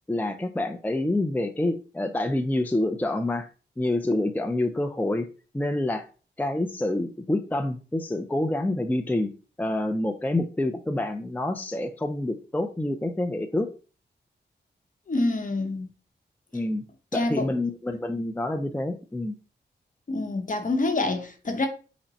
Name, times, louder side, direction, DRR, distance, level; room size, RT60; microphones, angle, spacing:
voice 1, 0.1-3.5 3.8-5.3 5.5-6.1 6.4-9.3 9.6-13.7 16.5-16.8 17.1-19.3, left 1 dB, 10° left, 0.5 m, -27 dB
voice 2, 15.1-15.9 17.1-17.6 20.1-21.7, left 2 dB, 45° left, 0.9 m, -26 dB
5.5 x 2.1 x 4.1 m
cardioid pair, 55°, 18 cm